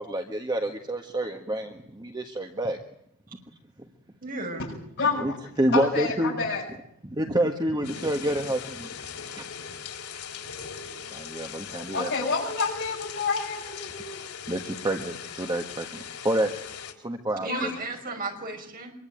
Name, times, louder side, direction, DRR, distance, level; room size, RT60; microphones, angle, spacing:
voice 1, 0.0-2.8 5.2-6.4 7.0-8.9 9.2-9.4 11.1-12.3 14.2-16.5 17.0-17.7, right 1 dB, 20° right, 4 dB, 1.6 m, -28 dB
voice 2, 4.2-4.7 17.4-18.9, right 2 dB, 40° right, 3 dB, 5.7 m, -34 dB
voice 3, 5.7-6.6 11.7-14.2 17.5-17.8, left 4 dB, 55° left, -6 dB, 7.3 m, -29 dB
sound 1, 7.8-16.9, left 7 dB, 85° left, 3.1 m, -40 dB
25.5 x 23.0 x 9.2 m, 0.72 s
head